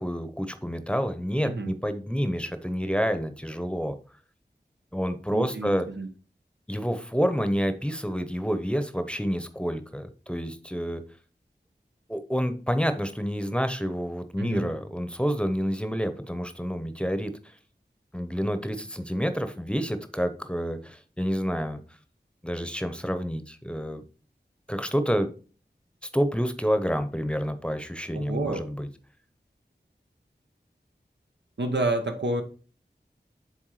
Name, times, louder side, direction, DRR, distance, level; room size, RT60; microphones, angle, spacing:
voice 1, 0.0-3.9 4.9-5.9 6.7-11.0 12.1-17.3 18.1-21.8 22.4-24.0 24.7-25.3 26.1-28.9, equal, 5° left, 9 dB, 0.8 m, -28 dB
voice 2, 5.3-6.1 14.4-14.7 28.1-28.7 31.6-32.4, right 2 dB, 85° right, 5 dB, 1.0 m, -29 dB
7.9 x 3.6 x 4.8 m, 0.38 s
wide cardioid pair, 50°, 18 cm